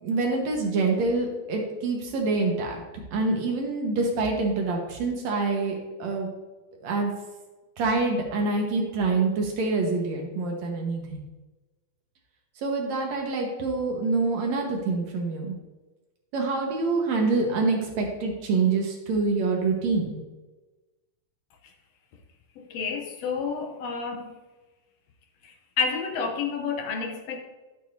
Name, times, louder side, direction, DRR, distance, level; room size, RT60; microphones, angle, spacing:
voice 1, 0.0-2.8 3.1-6.3 6.8-7.1 7.8-11.2 12.6-15.6 16.3-20.2, right 3 dB, 65° right, 1 dB, 2.4 m, -26 dB
voice 2, 22.6-24.3 25.4-27.4, left 5 dB, 70° left, 4 dB, 1.6 m, -30 dB
12.0 x 8.4 x 2.7 m, 1.2 s
omnidirectional pair, 3.7 m